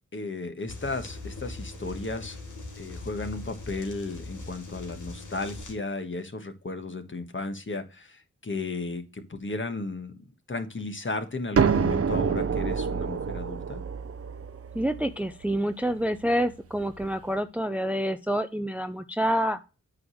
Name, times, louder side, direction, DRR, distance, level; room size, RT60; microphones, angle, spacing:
voice 1, 0.1-2.4 2.8-10.2 10.5-13.8, left 3 dB, 40° left, 7 dB, 1.4 m, -34 dB
sound 1, 0.7-5.7, left 2 dB, 80° left, 1.7 m, -40 dB
sound 2, 11.6-17.1, right 6 dB, 50° right, 0.7 m, -28 dB
voice 2, 14.7-19.6, equal, 5° right, 10 dB, 0.5 m, -27 dB
8.5 x 3.2 x 6.3 m, 0.31 s
cardioid pair, 50°, 30 cm